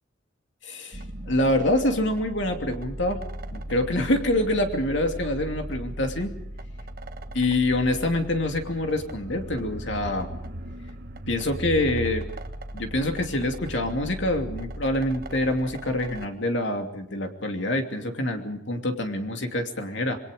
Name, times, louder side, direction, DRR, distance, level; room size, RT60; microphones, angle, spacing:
voice 1, 0.6-3.2 3.5-6.3 7.3-10.3 11.3-12.2 12.7-20.2, left 1 dB, 65° left, 4 dB, 2.8 m, -26 dB
sound 1, 0.9-16.3, right 1 dB, 50° right, 1.5 m, -37 dB
27.0 x 22.0 x 5.2 m, 0.82 s
head